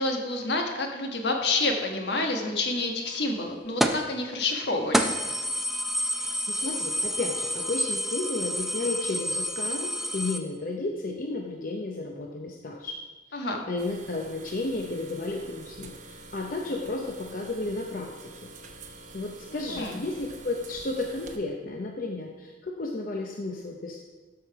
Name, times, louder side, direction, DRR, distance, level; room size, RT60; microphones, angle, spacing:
voice 1, 0.0-5.1 13.3-13.6 19.5-20.0, left 2 dB, 75° left, 3 dB, 1.4 m, -28 dB
sound 1, 3.8-4.1 4.5-4.6 4.9-10.4, equal, ahead, 0.5 m, -28 dB
voice 2, 6.1-13.0 13.3-18.3 19.1-24.0, left 2 dB, 50° left, 1 dB, 0.7 m, -33 dB
sound 2, 13.8-21.4, right 2 dB, 45° right, 0.8 m, -47 dB
12.5 x 5.6 x 4.7 m, 1.3 s
head